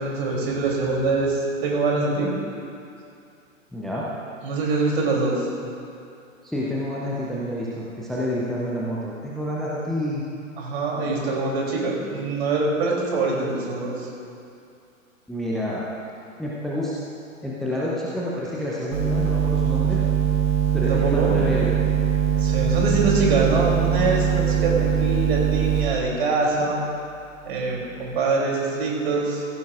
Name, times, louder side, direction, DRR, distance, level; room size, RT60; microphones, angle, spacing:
voice 1, 0.0-2.4 4.4-5.5 10.6-14.1 20.7-21.4 22.4-26.9 27.4-29.5, right 3 dB, 50° right, -2 dB, 3.3 m, -24 dB
voice 2, 3.7-4.0 6.4-10.2 15.3-15.8 16.4-16.9 17.4-20.0 20.7-21.9, left 1 dB, ahead, -7 dB, 0.7 m, -28 dB
sound 1, 18.9-25.9, right 9 dB, 70° right, 1.9 m, -21 dB
16.0 x 15.0 x 2.5 m, 2.5 s
figure-of-eight pair, 110°, 40 cm